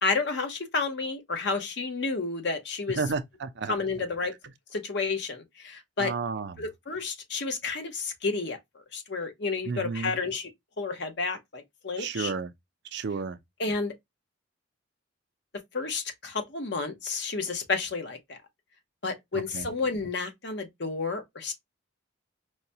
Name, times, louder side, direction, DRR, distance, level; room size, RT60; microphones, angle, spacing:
voice 1, 0.0-3.0 3.7-4.3 4.7-6.1 6.6-8.6 8.9-10.5 10.8-12.3 13.6-13.9 15.7-18.4 19.0-21.5, left 4 dB, 55° left, 0.9 m, -31 dB
voice 2, 3.0-3.8 6.0-6.6 9.7-10.1 12.0-12.5 12.9-13.4 19.5-19.7, right 4 dB, 55° right, 0.4 m, -31 dB
4.7 x 2.2 x 2.7 m
head